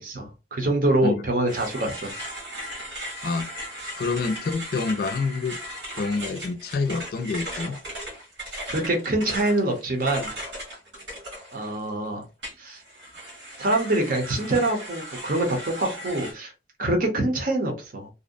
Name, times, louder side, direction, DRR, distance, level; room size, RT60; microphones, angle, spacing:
voice 1, 0.0-2.2 8.7-10.3 11.5-12.2 12.6-12.8 13.6-16.5 16.8-18.1, right 1 dB, 50° right, 0.7 m, -25 dB
sound 1, 1.5-11.9 12.4-16.3, equal, 80° right, 1.4 m, -37 dB
voice 2, 3.2-3.5 4.0-5.6 6.0-7.8, left 4 dB, 55° left, 0.3 m, -27 dB
2.6 x 2.0 x 2.5 m
head